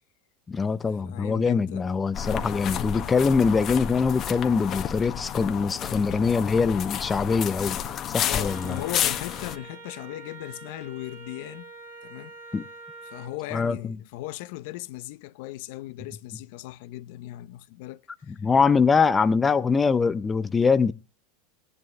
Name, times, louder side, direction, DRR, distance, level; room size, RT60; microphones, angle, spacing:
voice 1, 0.5-8.8 12.5-12.7 13.5-13.8 18.3-20.9, left 5 dB, 20° left, 0.8 m, -23 dB
voice 2, 1.0-1.9 8.1-11.7 12.0-12.3 13.0-18.4, left 17 dB, 65° left, 0.8 m, -38 dB
sound 1, 2.1-9.5, left 9 dB, 40° left, 1.5 m, -31 dB
Wind instrument woodwind instrument, 8.4-13.3, right 3 dB, 85° right, 4.2 m, -45 dB
17.0 x 11.0 x 3.3 m
hypercardioid pair, 105°, 0 cm